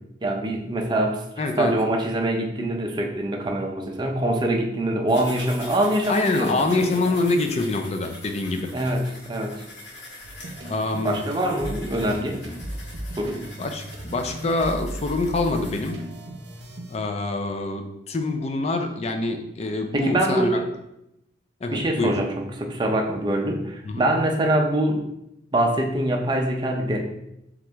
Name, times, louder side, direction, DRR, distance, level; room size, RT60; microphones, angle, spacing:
voice 1, 0.2-1.2 1.6-6.9 8.7-9.6 11.0-12.4 13.2-13.4 19.9-20.7 21.7-22.3 22.6-25.0 25.5-27.0, right 1 dB, 25° right, 2 dB, 0.5 m, -24 dB
voice 2, 1.4-1.7 6.1-8.7 10.6-11.2 13.6-16.0 16.9-20.6 21.6-22.1 23.8-24.0, left 2 dB, 35° left, 5 dB, 0.4 m, -25 dB
sound 1, 5.1-15.9, left 2 dB, 90° left, 1.4 m, -43 dB
sound 2, 10.2-17.0, right 1 dB, 75° right, 0.7 m, -37 dB
3.7 x 3.1 x 3.4 m, 0.83 s
head